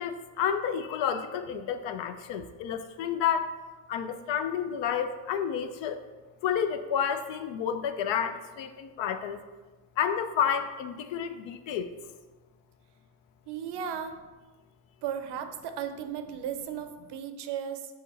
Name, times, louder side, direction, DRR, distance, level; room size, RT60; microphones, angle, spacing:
voice 1, 0.0-3.5 3.9-6.0 6.4-9.4 10.0-11.9, left 8 dB, 70° left, 9 dB, 0.5 m, -30 dB
voice 2, 13.5-14.2 15.0-17.9, right 8 dB, 60° right, 8 dB, 0.6 m, -35 dB
4.3 x 3.6 x 3.3 m, 1.3 s
supercardioid pair, 75°, 47 cm